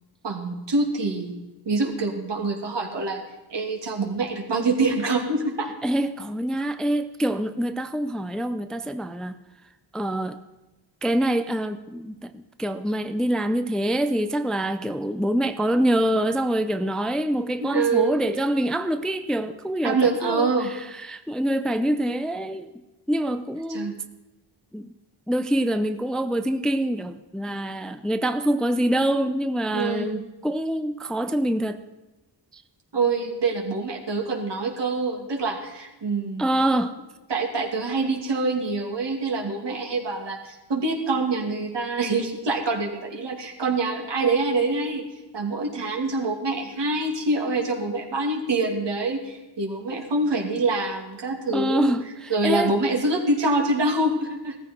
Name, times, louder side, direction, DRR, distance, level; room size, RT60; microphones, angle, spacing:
voice 1, 0.2-1.4 1.7-3.2 3.5-5.7 17.6-18.2 19.8-20.7 23.7-23.9 29.7-30.2 32.9-36.5 37.3-45.0 45.3-51.9 52.3-54.6, right 3 dB, 70° right, 1 dB, 2.7 m, -25 dB
voice 2, 5.8-9.4 9.9-10.4 11.0-22.7 23.1-24.0 24.7-24.9 25.3-31.8 32.5-32.6 36.4-37.0 51.5-52.7, right 1 dB, ahead, 10 dB, 0.5 m, -25 dB
16.5 x 14.0 x 4.5 m, 1.1 s
wide cardioid pair, 105°, 44 cm